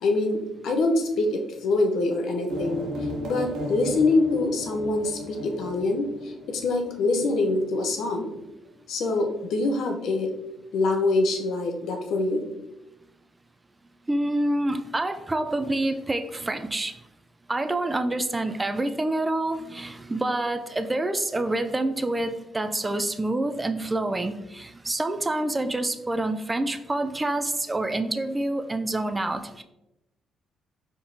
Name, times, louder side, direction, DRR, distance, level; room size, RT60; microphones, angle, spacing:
voice 1, 0.0-2.9 3.2-6.1 6.5-8.3 8.9-10.3 10.7-12.4, left 2 dB, 75° left, 3 dB, 0.7 m, -24 dB
sound 1, 2.5-7.9, left 1 dB, 80° right, 1.2 m, -35 dB
voice 2, 14.1-16.9 17.5-29.6, right 2 dB, 20° right, 8 dB, 0.3 m, -27 dB
4.6 x 3.7 x 2.7 m, 0.91 s
cardioid pair, 90°, 0 cm